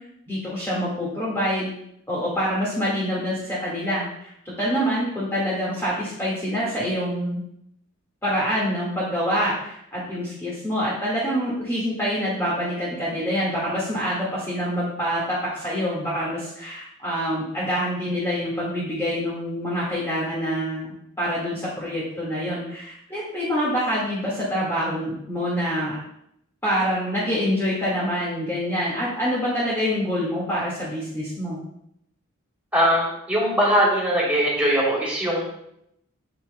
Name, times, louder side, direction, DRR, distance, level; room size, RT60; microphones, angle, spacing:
voice 1, 0.3-1.7 2.1-7.4 8.2-20.9 21.2-25.9 26.6-31.6, equal, 10° left, -8 dB, 1.7 m, -26 dB
voice 2, 32.7-35.5, equal, 5° right, -6 dB, 2.9 m, -21 dB
8.7 x 8.4 x 2.2 m, 0.76 s
head